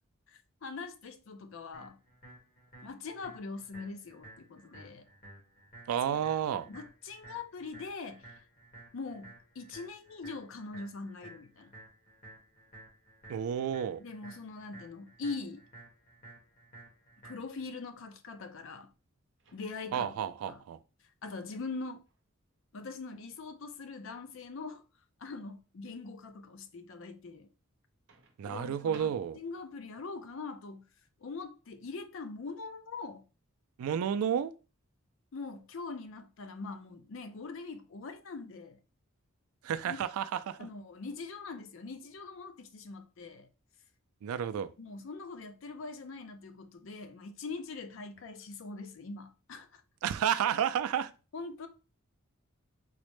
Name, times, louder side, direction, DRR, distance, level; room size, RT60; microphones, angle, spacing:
voice 1, 0.3-2.0 2.8-5.1 6.1-6.2 6.6-8.4 8.9-11.7 14.0-15.6 17.2-18.9 19.5-20.1 20.5-20.6 21.2-22.0 22.7-24.8 25.2-27.5 28.4-30.9 31.2-33.2 35.3-38.8 39.8-40.0 40.6-43.5 44.8-49.8 51.3-51.7, left 4 dB, 60° left, 0.4 m, -42 dB
sound 1, 1.7-17.7, right 2 dB, 40° left, 1.2 m, -54 dB
voice 2, 5.9-6.7 13.3-14.0 19.9-20.8 28.4-29.4 33.8-34.5 39.6-40.6 44.2-44.7 50.0-51.1, right 8 dB, 80° right, 0.3 m, -31 dB
Microwave oven, 19.4-20.1 22.1-22.3 28.1-29.7, right 3 dB, 55° right, 0.7 m, -59 dB
3.9 x 2.1 x 3.0 m
head